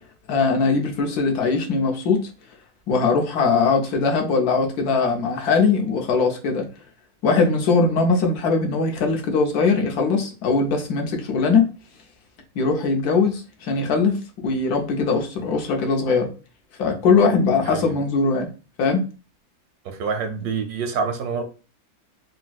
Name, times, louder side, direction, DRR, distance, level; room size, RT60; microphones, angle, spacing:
voice 1, 0.3-2.3 2.9-6.7 7.2-11.7 12.6-16.3 16.8-18.5 18.8-19.0, left 4 dB, 85° left, 1.3 m, -20 dB
voice 2, 19.8-21.4, right 5 dB, 85° right, 1.1 m, -26 dB
4.1 x 2.0 x 2.2 m
omnidirectional pair, 1.6 m